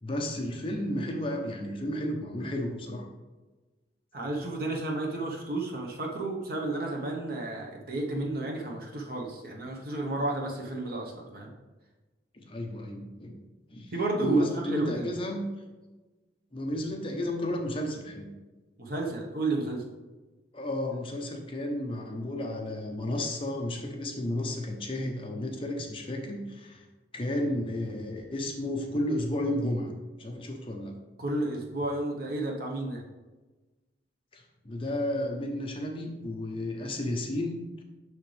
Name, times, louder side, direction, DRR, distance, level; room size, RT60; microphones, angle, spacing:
voice 1, 0.0-3.1 12.3-13.4 13.7-13.9 14.2-15.4 16.5-18.3 20.5-26.9 27.1-29.9 30.2-30.9 34.3-37.8, left 1 dB, 30° left, 1 dB, 0.8 m, -32 dB
voice 2, 4.1-11.5 13.9-15.1 18.8-19.8 31.2-33.0, right 2 dB, 50° right, 0 dB, 1.1 m, -32 dB
6.4 x 6.3 x 3.4 m, 1.2 s
head